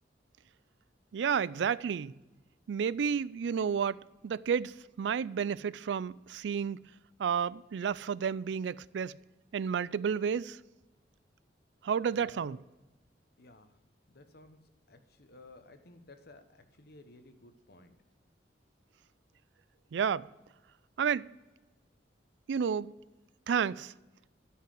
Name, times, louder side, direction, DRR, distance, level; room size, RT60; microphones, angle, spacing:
voice 1, 1.1-2.1 2.7-4.0 4.2-6.8 7.2-9.1 9.5-10.6 11.8-12.6 19.9-20.3 21.0-21.3 22.5-22.9 23.5-23.9, right 7 dB, 75° right, 0.3 m, -31 dB
voice 2, 12.1-12.6 13.4-13.8 14.1-14.6 14.9-18.0, left 2 dB, 60° left, 1.1 m, -55 dB
12.5 x 5.7 x 7.7 m
head